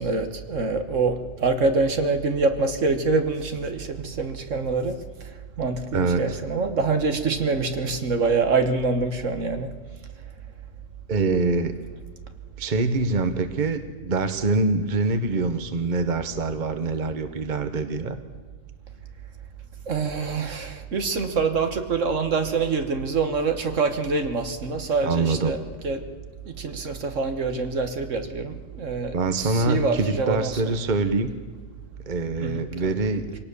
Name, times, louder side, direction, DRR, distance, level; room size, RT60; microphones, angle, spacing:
voice 1, 0.0-5.3 5.6-9.7 19.9-26.0 26.5-30.8 32.4-32.7, right 4 dB, 65° right, 7 dB, 1.7 m, -25 dB
voice 2, 5.9-6.2 11.1-11.8 12.6-18.2 25.0-25.5 29.1-31.3 32.1-33.2, right 3 dB, 35° right, 9 dB, 1.3 m, -24 dB
24.0 x 18.0 x 6.9 m, 1.5 s
omnidirectional pair, 1.4 m